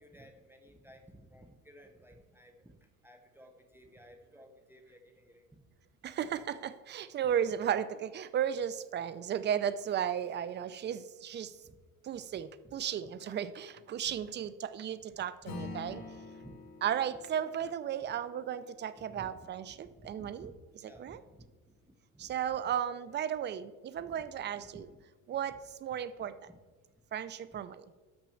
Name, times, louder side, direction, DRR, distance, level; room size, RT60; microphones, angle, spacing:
voice 1, 0.0-2.8 3.0-5.6 6.2-6.3 11.6-11.8 12.3-12.7 13.2-13.4 14.0-14.3 15.5-16.1 16.4-16.6 18.6-19.4 19.7-20.6 20.8-21.5 21.8-22.3 22.6-22.9 23.9-24.3 24.5-25.0 25.5-25.6 26.2-26.6 27.5-27.6, right 1 dB, 5° right, 4 dB, 0.8 m, -56 dB
voice 2, 6.0-11.5 12.0-16.0 16.8-20.5 21.0-21.2 22.2-24.9 25.3-26.3 27.1-27.8, right 9 dB, 30° right, 14 dB, 0.5 m, -35 dB
Acoustic guitar / Strum, 15.4-20.2, left 3 dB, 65° left, 1.9 m, -48 dB
6.2 x 6.1 x 7.0 m, 1.3 s
supercardioid pair, 115°, 37 cm